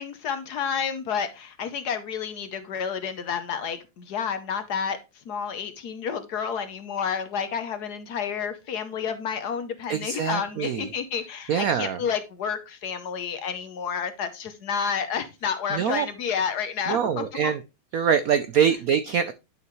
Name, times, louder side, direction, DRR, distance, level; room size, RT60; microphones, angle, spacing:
voice 1, 0.0-17.5, left 7 dB, 60° left, 1.3 m, -30 dB
voice 2, 9.9-10.9 11.5-12.0 15.7-16.1 16.9-17.6 17.9-19.3, right 7 dB, 90° right, 0.7 m, -24 dB
11.0 x 5.5 x 3.1 m
omnidirectional pair, 2.2 m